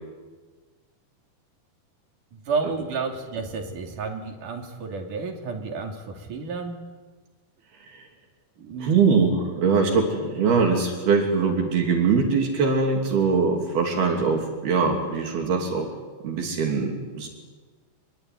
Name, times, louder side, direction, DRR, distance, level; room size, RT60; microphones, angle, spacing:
voice 1, 2.3-6.8 8.6-9.0, right 4 dB, 55° right, 3 dB, 4.3 m, -31 dB
voice 2, 8.8-15.9 16.2-17.3, right 5 dB, 70° right, 2 dB, 5.0 m, -22 dB
25.0 x 22.5 x 9.5 m, 1.4 s
omnidirectional pair, 4.7 m